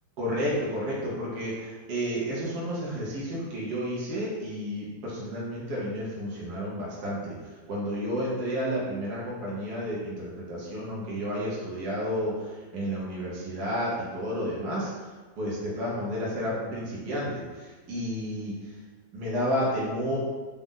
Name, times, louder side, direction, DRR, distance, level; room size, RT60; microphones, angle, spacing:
voice 1, 0.2-18.7 19.1-20.2, equal, 70° right, -6 dB, 1.4 m, -31 dB
4.1 x 2.3 x 3.7 m, 1.3 s
omnidirectional pair, 1.9 m